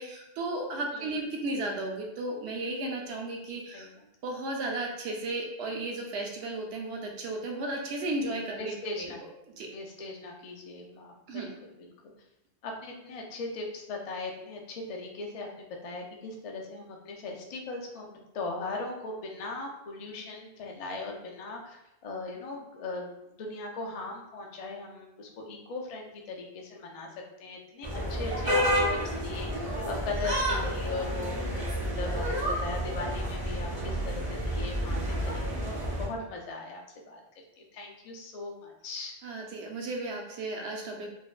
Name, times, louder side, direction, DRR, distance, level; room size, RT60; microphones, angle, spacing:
voice 1, 0.0-3.9 4.2-9.1 9.6-9.7 11.3-11.5 39.2-41.1, right 2 dB, 75° right, 0 dB, 0.8 m, -34 dB
voice 2, 0.9-1.2 3.7-4.0 8.2-9.2 9.7-11.9 12.6-27.1 27.4-32.2 32.6-37.2 37.6-39.2, left 3 dB, 70° left, 0 dB, 0.3 m, -39 dB
sound 1, 27.8-36.1, equal, 40° right, 0.5 m, -30 dB
2.5 x 2.1 x 2.3 m, 0.87 s
omnidirectional pair, 1.1 m